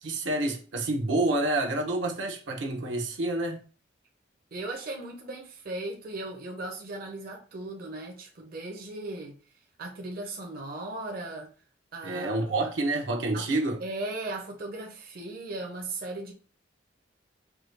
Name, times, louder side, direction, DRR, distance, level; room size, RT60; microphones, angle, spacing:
voice 1, 0.0-3.6 12.0-13.8, right 2 dB, 80° right, 0.9 m, -28 dB
voice 2, 4.5-9.4 9.8-11.5 11.9-12.5 13.3-13.5 13.8-16.3, right 2 dB, 50° right, 0.7 m, -37 dB
4.7 x 2.3 x 3.2 m
head